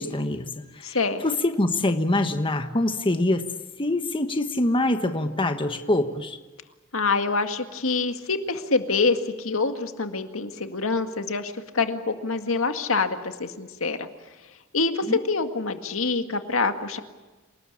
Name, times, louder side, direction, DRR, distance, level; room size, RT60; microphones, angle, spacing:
voice 1, 0.0-1.0 1.2-3.5 3.8-6.4 15.1-15.2, left 1 dB, 25° left, 7 dB, 1.2 m, -24 dB
voice 2, 0.8-1.3 6.9-14.1 14.7-17.0, left 4 dB, 75° left, 7 dB, 2.0 m, -26 dB
28.0 x 19.0 x 8.6 m, 1.2 s
head